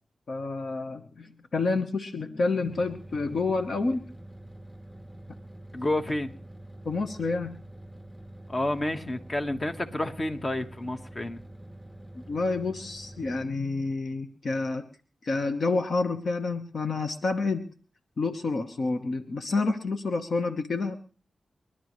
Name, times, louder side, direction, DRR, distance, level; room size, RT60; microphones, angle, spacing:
voice 1, 0.3-4.0 6.8-7.6 12.3-14.8 15.2-17.7 18.2-20.9, left 3 dB, 65° left, 7 dB, 1.1 m, -29 dB
sound 1, 2.6-13.5, right 1 dB, ahead, 3.3 m, -46 dB
voice 2, 5.7-6.3 8.5-11.4, left 1 dB, 35° left, 8 dB, 1.4 m, -30 dB
30.0 x 11.5 x 3.2 m, 0.40 s
cardioid pair, 60°, 0 cm